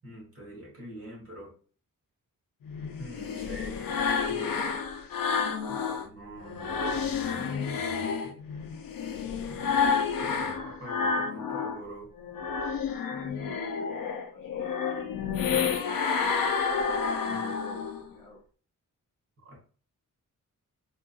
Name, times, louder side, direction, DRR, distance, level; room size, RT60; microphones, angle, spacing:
voice 1, 0.0-1.6 3.0-4.5 5.7-8.4 9.5-9.7 10.2-12.1 17.3-17.5 19.4-19.6, right 1 dB, 45° right, -3 dB, 1.5 m, -45 dB
sound 1, 2.6-6.1 6.4-11.8 12.2-18.1, left 6 dB, 85° left, 0.5 m, -30 dB
voice 2, 13.1-14.7 15.6-16.5 17.2-18.4, left 1 dB, 20° left, -5 dB, 1.1 m, -48 dB
3.6 x 2.5 x 2.3 m, 0.40 s
wide cardioid pair, 180°, 33 cm